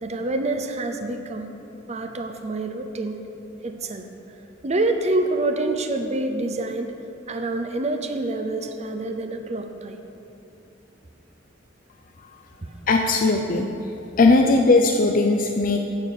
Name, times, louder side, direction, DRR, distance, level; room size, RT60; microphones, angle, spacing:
voice 1, 0.0-1.5 1.9-3.2 3.6-4.1 4.6-6.9 7.3-10.0 12.6-12.7, right 2 dB, 35° right, 6 dB, 0.6 m, -27 dB
voice 2, 12.9-13.7 14.2-15.8, left 3 dB, 50° left, 3 dB, 0.5 m, -18 dB
9.1 x 7.5 x 6.7 m, 2.8 s
head